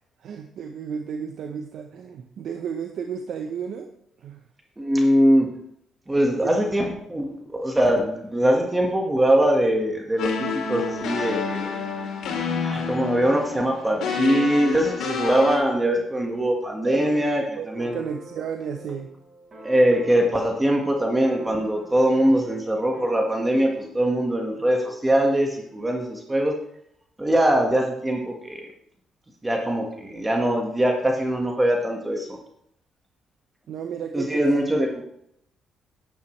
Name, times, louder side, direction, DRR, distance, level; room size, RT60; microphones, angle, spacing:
voice 1, 0.2-3.9 4.2-4.4 6.4-6.6 16.0-16.1 16.8-19.1 33.7-34.5, right 7 dB, 70° right, 5 dB, 0.8 m, -33 dB
voice 2, 4.8-5.5 6.1-11.7 12.6-18.0 19.6-26.6 27.2-28.7 29.4-32.4 34.1-35.0, right 1 dB, 15° right, 1 dB, 1.6 m, -22 dB
sound 1, 10.2-15.6, left 5 dB, 80° left, 2.7 m, -28 dB
sound 2, 17.8-24.0, right 1 dB, 35° right, 4.7 m, -45 dB
11.5 x 9.3 x 3.2 m, 0.73 s
cardioid pair, 90°, 0 cm